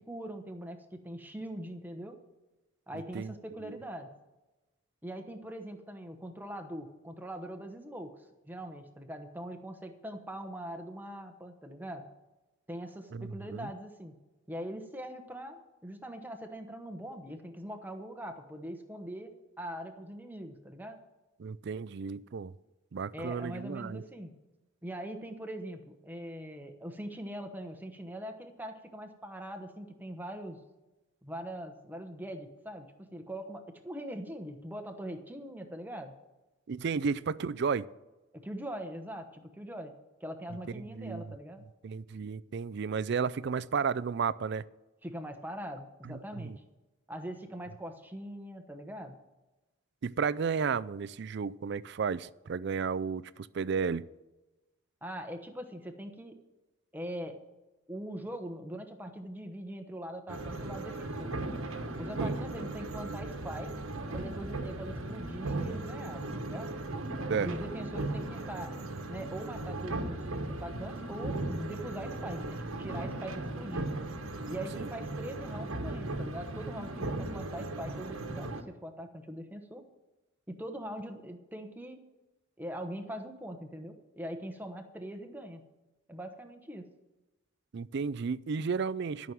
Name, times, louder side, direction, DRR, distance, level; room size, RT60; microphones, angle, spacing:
voice 1, 0.0-2.2 2.9-4.1 5.0-8.1 8.4-12.1 12.7-14.2 14.5-21.0 23.1-24.3 24.8-30.6 31.2-36.1 36.9-37.1 38.3-39.9 40.2-41.6 45.0-46.5 47.1-49.2 55.0-56.4 56.9-57.4 57.9-61.5 62.0-63.7 64.1-66.7 67.4-68.7 69.1-70.2 70.5-73.9 74.5-79.8 80.5-82.0 82.6-85.6 86.1-86.9, right 1 dB, 10° right, 1.0 m, -42 dB
voice 2, 13.1-13.7 21.4-22.5 22.9-24.0 36.7-37.9 40.9-41.2 41.8-44.6 46.0-46.2 46.4-46.6 50.0-54.0 62.2-62.3 67.3-67.5 74.8-74.9 87.7-89.3, right 5 dB, 55° right, 0.4 m, -33 dB
sound 1, 60.3-78.6, right 2 dB, 85° right, 1.2 m, -37 dB
12.5 x 6.2 x 9.1 m
head